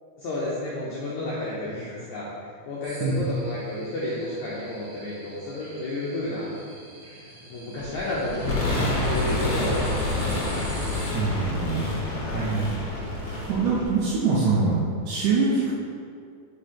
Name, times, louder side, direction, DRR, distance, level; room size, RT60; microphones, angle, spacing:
voice 1, 0.2-2.3 2.6-6.6 7.5-10.4 12.2-12.5, left 1 dB, 80° left, -7 dB, 1.7 m, -31 dB
sound 1, 2.8-11.1, right 2 dB, 55° right, 2.5 m, -45 dB
sound 2, 7.8-13.8, equal, 45° left, 1.7 m, -38 dB
sound 3, 8.4-14.5, left 2 dB, 60° left, 1.6 m, -28 dB
voice 2, 11.1-12.0 12.3-12.8 13.2-15.7, right 4 dB, 75° right, -6 dB, 1.9 m, -24 dB
5.3 x 4.9 x 4.3 m, 2.2 s
omnidirectional pair, 4.5 m